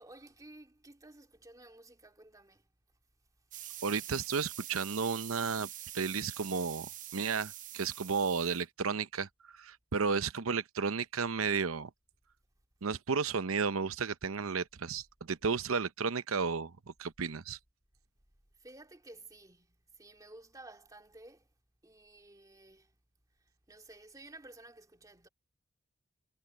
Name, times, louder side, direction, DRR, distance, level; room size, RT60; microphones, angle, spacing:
voice 1, 0.0-2.7 18.6-21.5 21.8-22.9 23.4-25.3, right 2 dB, 15° right, 2.3 m, -54 dB
sound 1, 3.5-8.6, right 12 dB, 40° right, 0.7 m, -45 dB
voice 2, 3.8-5.7 5.9-9.3 9.6-11.9 12.8-16.7 17.0-17.6, right 5 dB, 80° right, 0.8 m, -33 dB
head